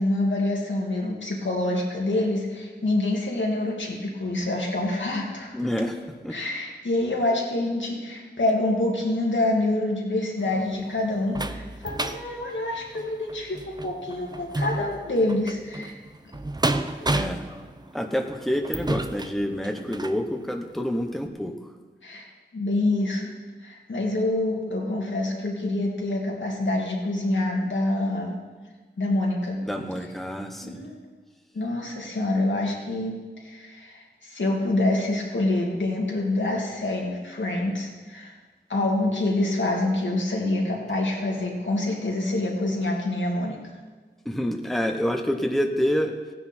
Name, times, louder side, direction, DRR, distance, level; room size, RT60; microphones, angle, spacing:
voice 1, 0.0-5.6 6.3-15.9 22.0-22.3 22.5-23.3 23.6-28.3 29.0-29.6 30.6-30.9 31.5-38.3 38.7-43.6, left 2 dB, 80° left, -2 dB, 2.3 m, -26 dB
voice 2, 5.5-6.4 17.0-17.5 17.9-21.5 29.6-30.8 44.2-46.1, equal, ahead, 4 dB, 1.0 m, -27 dB
sound 1, 10.4-20.2 20.8-20.9 21.3-21.4, right 2 dB, 20° right, 0.6 m, -32 dB
16.0 x 9.8 x 4.5 m, 1.4 s
wide cardioid pair, 70°, 19 cm